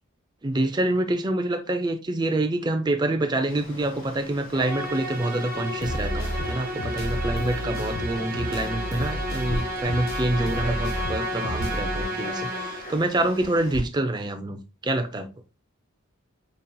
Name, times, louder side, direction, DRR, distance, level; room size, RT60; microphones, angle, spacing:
voice 1, 0.4-15.3, right 1 dB, 20° right, 0.4 m, -26 dB
Frog, 3.5-13.8, right 1 dB, 40° left, 1.3 m, -39 dB
Musical instrument, 4.6-13.1, equal, 45° right, 0.9 m, -32 dB
sound 1, 5.8-12.0, equal, 75° left, 0.8 m, -32 dB
5.2 x 2.8 x 2.2 m
head